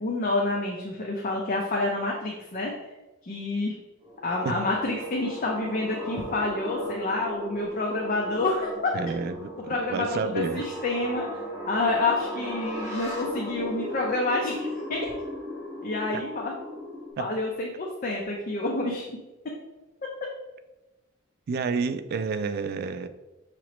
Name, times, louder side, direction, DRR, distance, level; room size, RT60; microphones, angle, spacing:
voice 1, 0.0-2.7 3.2-3.8 4.2-8.9 9.7-11.3 11.7-15.1 15.8-16.6 17.2-19.1, left 2 dB, 45° left, -1 dB, 0.6 m, -28 dB
sound 1, 4.0-17.1, left 1 dB, 15° right, 1.1 m, -36 dB
voice 2, 8.9-10.7 17.2-17.3 21.5-23.1, right 5 dB, 50° right, 11 dB, 0.3 m, -30 dB
5.9 x 3.0 x 3.0 m, 1.1 s
head